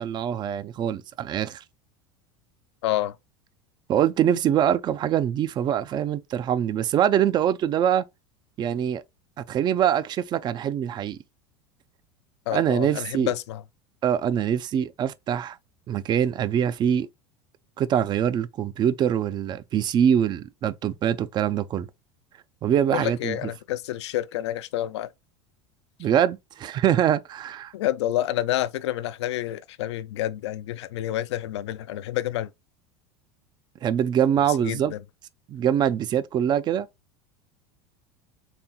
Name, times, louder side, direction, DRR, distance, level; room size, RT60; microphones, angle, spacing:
voice 1, 0.0-1.6 3.9-8.0 8.6-9.0 9.4-11.2 12.5-13.3 14.0-15.6 15.9-17.1 17.8-21.9 22.6-23.4 26.0-27.7 33.8-34.9 35.5-36.9, right 9 dB, 30° right, 0.4 m, -24 dB
voice 2, 2.8-3.2 12.5-13.6 22.9-25.1 27.7-32.5 34.6-35.0, left 13 dB, 85° left, 0.4 m, -28 dB
4.2 x 3.5 x 2.3 m
supercardioid pair, 110°, 14 cm